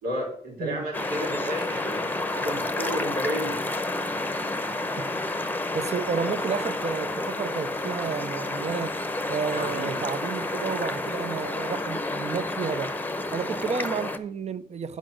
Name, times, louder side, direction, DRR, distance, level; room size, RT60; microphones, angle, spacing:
voice 1, 0.0-3.6 9.5-10.0, equal, 90° right, 3.8 m, -32 dB
sound 1, 0.9-14.2, left 2 dB, 10° left, 0.8 m, -30 dB
voice 2, 5.7-9.0 9.3-13.0 13.3-15.0, right 6 dB, 45° right, 0.6 m, -31 dB
8.4 x 5.1 x 6.2 m
cardioid pair, 85°, 16 cm